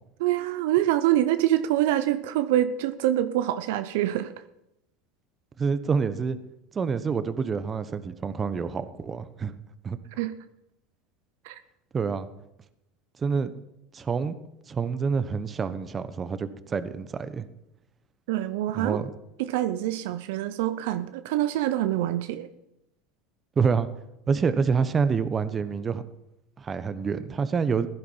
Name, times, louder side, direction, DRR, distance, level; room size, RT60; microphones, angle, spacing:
voice 1, 0.2-4.3 10.2-10.3 11.4-11.6 18.3-19.0 19.4-22.5, right 13 dB, 70° right, 11 dB, 0.7 m, -25 dB
voice 2, 5.6-6.4 6.7-9.6 9.8-10.0 11.9-12.3 13.2-13.5 13.9-14.4 14.7-17.5 18.7-19.1 23.6-23.9 24.3-26.0 26.6-27.9, right 5 dB, 25° right, 13 dB, 1.1 m, -27 dB
16.0 x 11.0 x 5.6 m, 0.86 s
hypercardioid pair, 95°, 0 cm